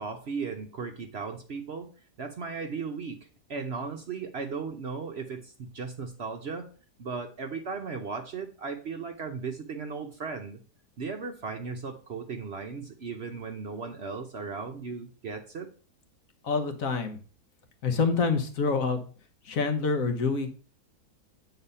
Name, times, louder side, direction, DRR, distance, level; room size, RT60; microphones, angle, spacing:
voice 1, 0.0-1.9 2.2-3.2 3.5-6.7 7.0-10.6 11.0-15.7, right 5 dB, 55° right, 5 dB, 0.8 m, -36 dB
voice 2, 16.4-17.2 17.8-19.1 19.5-20.5, left 4 dB, 60° left, 6 dB, 1.4 m, -27 dB
8.4 x 4.0 x 5.4 m, 0.38 s
omnidirectional pair, 1.7 m